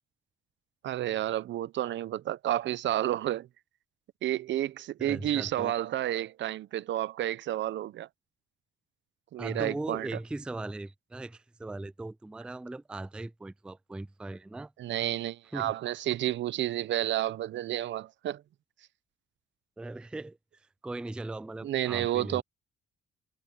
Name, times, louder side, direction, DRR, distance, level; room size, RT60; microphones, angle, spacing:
voice 1, 0.8-3.5 4.2-8.1 9.3-10.1 14.8-18.4 21.6-22.4, right 13 dB, 70° right, 0.7 m, -31 dB
voice 2, 5.0-5.7 9.4-14.7 15.5-15.7 19.8-22.4, right 2 dB, 5° right, 0.3 m, -39 dB
cardioid pair, 90°, 20 cm